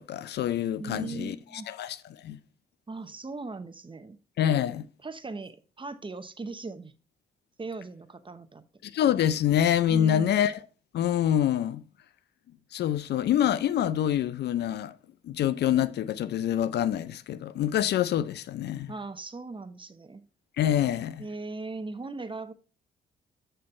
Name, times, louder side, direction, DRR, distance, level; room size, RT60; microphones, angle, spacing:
voice 1, 0.0-2.0 2.2-2.4 4.4-4.9 8.8-10.5 10.9-11.8 12.7-15.0 15.2-18.9 20.6-21.2, left 10 dB, 60° left, 0.5 m, -26 dB
voice 2, 0.8-1.7 2.9-4.2 5.0-6.9 7.6-8.6 9.9-10.4 18.9-20.2 21.2-22.5, right 3 dB, 25° right, 0.9 m, -38 dB
8.5 x 3.3 x 5.3 m
hypercardioid pair, 45°, 19 cm